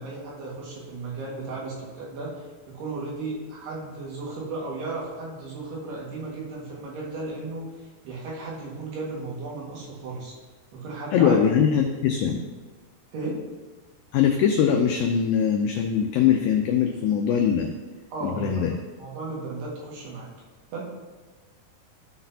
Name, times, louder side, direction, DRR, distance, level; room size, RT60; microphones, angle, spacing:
voice 1, 0.0-10.3 10.7-11.4 13.1-13.4 18.1-20.3 20.7-20.8, right 3 dB, 75° right, -4 dB, 3.8 m, -35 dB
voice 2, 11.1-12.4 14.1-17.7 18.2-18.7, left 8 dB, 90° left, 3 dB, 2.0 m, -22 dB
13.5 x 6.0 x 2.8 m, 1.3 s
omnidirectional pair, 4.8 m